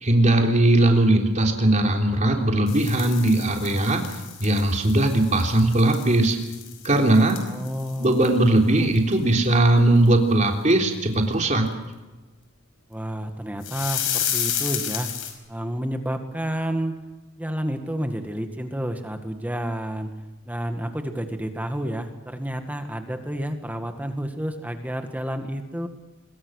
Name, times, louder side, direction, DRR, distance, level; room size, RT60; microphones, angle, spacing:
voice 1, 0.0-4.0 4.4-6.4 6.8-7.4 8.0-11.7, right 1 dB, 35° right, 2 dB, 3.6 m, -19 dB
sound 1, 2.7-8.6 9.0-9.1 9.4-9.5 10.1-10.2 10.7-10.8 13.6-15.3, left 9 dB, 70° left, 5.4 m, -32 dB
voice 2, 7.5-8.2 12.9-15.1 15.5-16.9 17.4-20.1 20.5-25.9, equal, 5° right, 6 dB, 1.8 m, -30 dB
25.5 x 22.5 x 6.5 m, 1.2 s
head